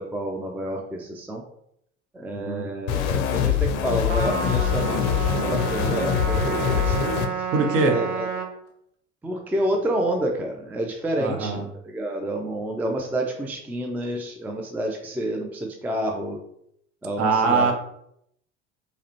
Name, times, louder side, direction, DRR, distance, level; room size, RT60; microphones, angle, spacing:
voice 1, 0.0-1.4 2.1-7.4 7.8-8.3 9.2-16.4 17.0-17.7, right 1 dB, 5° right, 1 dB, 0.4 m, -29 dB
voice 2, 2.3-2.7 7.5-7.9 11.2-11.6 17.2-17.7, right 4 dB, 40° right, 4 dB, 0.8 m, -22 dB
sound 1, 2.9-7.3, left 8 dB, 50° left, 0.5 m, -24 dB
Trumpet, 4.1-8.5, right 6 dB, 90° right, 0.6 m, -30 dB
4.7 x 2.2 x 2.9 m, 0.73 s
figure-of-eight pair, 70°, 35 cm